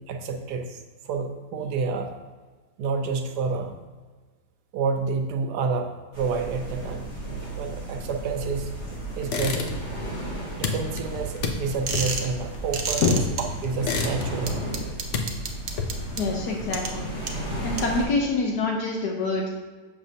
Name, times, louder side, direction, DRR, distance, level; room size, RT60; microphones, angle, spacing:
voice 1, 0.0-2.1 2.8-3.7 4.7-7.1 7.6-8.7 9.2-9.8 10.6-13.2 13.6-14.6, right 4 dB, 75° right, 5 dB, 1.2 m, -29 dB
sound 1, 6.1-18.0, right 2 dB, 40° left, 2.4 m, -34 dB
sound 2, 9.2-10.0 10.3-13.2 13.6-14.6 14.9-16.2, left 4 dB, 60° left, 0.8 m, -30 dB
sound 3, 11.9-12.3 12.7-13.4 14.5-16.2 16.7-16.9 17.3-17.4 17.8-17.9, right 5 dB, 60° right, 0.8 m, -29 dB
voice 2, 16.2-17.1 17.6-19.5, left 3 dB, 75° left, 0 dB, 1.3 m, -25 dB
6.7 x 6.6 x 2.7 m, 1.4 s
omnidirectional pair, 1.8 m